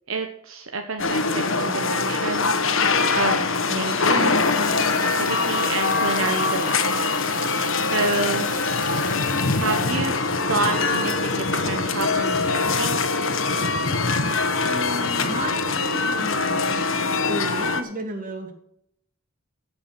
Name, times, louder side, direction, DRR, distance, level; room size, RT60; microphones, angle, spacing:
voice 1, 0.1-2.5 3.1-4.4 5.2-7.0 7.8-8.5 9.6-10.2 10.5-13.0, right 3 dB, 70° right, 5 dB, 1.2 m, -29 dB
sound 1, 1.0-17.8, left 3 dB, 65° left, 1.2 m, -23 dB
sound 2, 4.4-9.9, left 8 dB, 40° left, 1.1 m, -36 dB
voice 2, 14.6-16.8 17.3-18.5, right 1 dB, 40° right, 3 dB, 2.6 m, -33 dB
16.0 x 6.0 x 6.1 m, 0.72 s
head